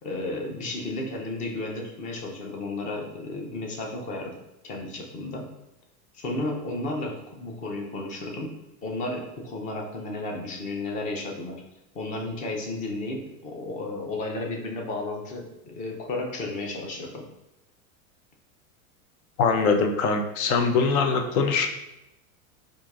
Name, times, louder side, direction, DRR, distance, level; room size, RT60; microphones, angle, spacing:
voice 1, 0.0-4.4 4.6-5.5 6.1-11.6 11.9-17.3, left 2 dB, 20° left, 1 dB, 0.3 m, -33 dB
voice 2, 19.4-21.7, left 4 dB, 70° left, 5 dB, 0.7 m, -22 dB
4.4 x 2.6 x 2.3 m, 0.92 s
supercardioid pair, 125°, 44 cm